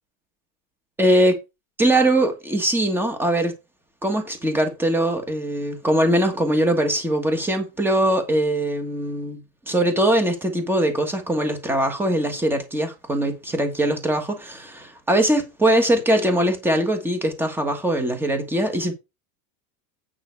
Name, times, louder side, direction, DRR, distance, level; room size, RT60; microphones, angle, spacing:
voice 1, 1.0-1.4 1.8-3.5 4.0-18.9, right 1 dB, 5° right, 1.4 m, -21 dB
9.1 x 5.8 x 4.6 m
supercardioid pair, 180°, 40 cm